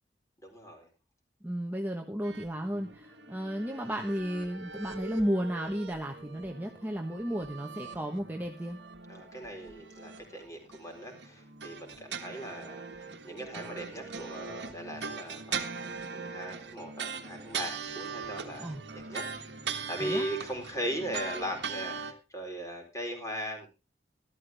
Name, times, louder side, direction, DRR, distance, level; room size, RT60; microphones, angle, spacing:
voice 1, 0.4-0.9 9.1-18.7 18.9-19.5 19.9-23.7, equal, 20° left, 3 dB, 4.1 m, -39 dB
voice 2, 1.4-8.8 18.6-18.8 20.0-20.3, equal, 10° right, 2 dB, 1.2 m, -33 dB
sound 1, 2.2-22.1, right 5 dB, 85° right, 1.5 m, -41 dB
13.0 x 13.0 x 3.4 m, 0.28 s
head